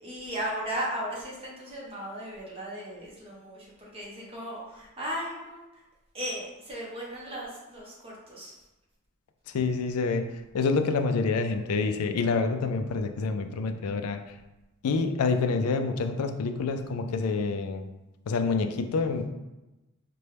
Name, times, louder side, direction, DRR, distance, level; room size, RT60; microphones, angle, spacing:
voice 1, 0.0-5.8 6.1-8.6, equal, 25° right, -4 dB, 1.0 m, -36 dB
voice 2, 9.5-14.4 14.8-17.9 18.3-19.2, left 4 dB, 75° left, 7 dB, 0.4 m, -27 dB
4.1 x 2.2 x 3.3 m, 1.0 s
head